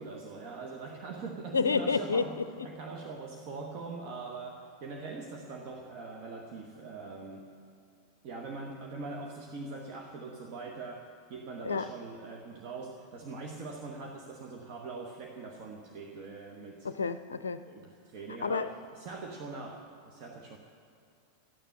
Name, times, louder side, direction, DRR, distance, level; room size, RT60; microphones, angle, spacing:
voice 1, 0.0-2.4 2.6-7.5 8.2-16.9 17.7-20.6, right 3 dB, 45° right, 2 dB, 1.2 m, -42 dB
voice 2, 1.5-2.2 11.6-11.9 16.8-17.6 18.4-18.7, left 5 dB, 70° left, 12 dB, 0.5 m, -29 dB
14.0 x 9.2 x 9.7 m, 2.6 s
figure-of-eight pair, 90°, 0 cm